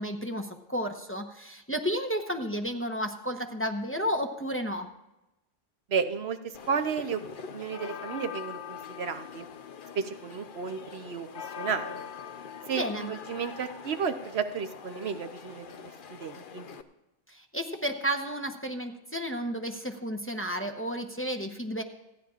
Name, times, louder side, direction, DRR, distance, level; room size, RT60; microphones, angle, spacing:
voice 1, 0.0-4.9 12.7-13.1 17.3-21.8, equal, 15° left, 4 dB, 0.8 m, -32 dB
voice 2, 5.9-7.2 7.5-9.5 9.9-12.0 12.7-16.7, right 6 dB, 80° right, 7 dB, 1.1 m, -33 dB
sound 1, 6.5-16.8, left 7 dB, 60° left, 0.9 m, -43 dB
28.5 x 10.0 x 2.5 m, 0.96 s
omnidirectional pair, 1.0 m